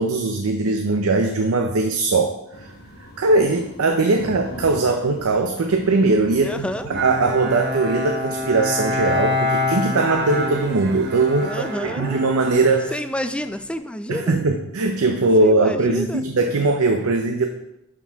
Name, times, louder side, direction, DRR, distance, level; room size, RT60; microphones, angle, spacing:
voice 1, 0.0-2.7 3.2-11.7 12.0-12.9 14.1-17.5, right 3 dB, 80° right, 4 dB, 0.6 m, -20 dB
sound 1, 2.5-12.8, left 1 dB, 50° left, 1.0 m, -42 dB
voice 2, 6.4-6.9 11.4-12.2 12.9-14.4 15.4-16.2, equal, 5° left, 9 dB, 0.3 m, -29 dB
Bowed string instrument, 6.9-13.6, left 1 dB, 50° right, 0.9 m, -26 dB
11.5 x 4.5 x 3.5 m, 0.86 s
head